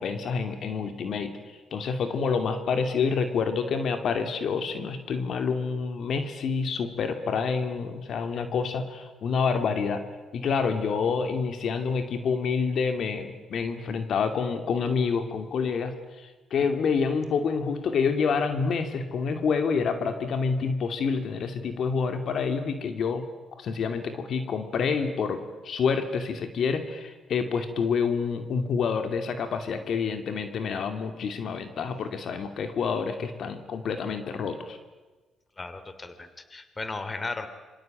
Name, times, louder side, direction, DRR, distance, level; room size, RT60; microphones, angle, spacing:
voice 1, 0.0-1.3 1.7-10.0 10.3-23.3 23.5-34.8, left 5 dB, 60° left, 7 dB, 2.6 m, -28 dB
voice 2, 35.6-37.5, left 3 dB, 25° left, 11 dB, 2.9 m, -35 dB
26.5 x 24.0 x 9.1 m, 1.2 s
cardioid pair, 90°, 0 cm